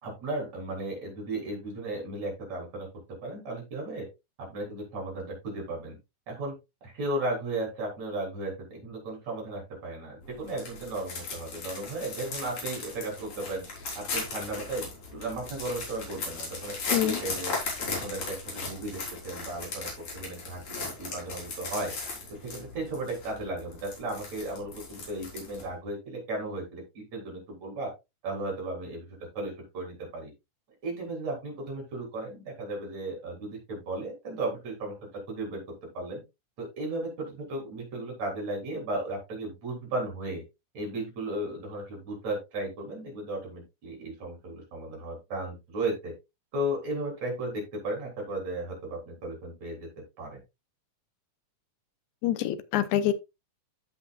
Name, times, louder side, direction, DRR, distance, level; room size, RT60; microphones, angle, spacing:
voice 1, 0.0-2.9 3.2-4.1 4.4-6.0 6.3-6.5 6.8-13.6 14.0-16.7 17.0-17.6 17.9-20.6 21.0-21.9 22.4-27.9 28.2-29.1 29.3-30.3 30.8-35.6 35.9-36.2 36.6-40.4 40.7-46.1 46.5-49.9 50.2-50.4, right 2 dB, 60° right, 4.7 m, -35 dB
sound 1, 10.2-25.7, left 3 dB, 65° left, 4.9 m, -37 dB
voice 2, 52.2-53.1, left 11 dB, 80° left, 2.1 m, -26 dB
14.5 x 5.5 x 2.3 m
omnidirectional pair, 3.6 m